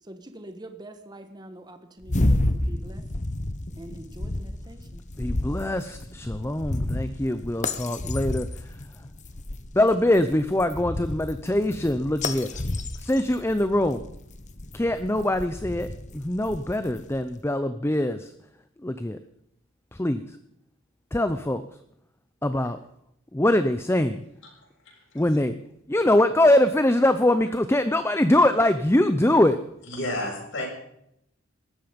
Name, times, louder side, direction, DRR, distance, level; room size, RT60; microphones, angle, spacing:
voice 1, 0.0-3.0 3.8-5.0, right 1 dB, 20° right, 7 dB, 1.4 m, -44 dB
sound 1, 2.0-17.2, left 1 dB, 35° left, 1.1 m, -31 dB
voice 2, 5.2-8.5 9.7-12.5 13.0-14.0 14.7-18.3 18.8-19.2 19.9-20.4 21.1-21.6 22.4-22.8 23.3-24.2 25.1-25.6 25.9-29.6, left 1 dB, 10° left, 10 dB, 0.6 m, -23 dB
voice 3, 24.8-25.2 29.9-30.7, left 1 dB, 65° left, -2 dB, 7.3 m, -31 dB
19.0 x 14.0 x 5.2 m, 0.76 s
head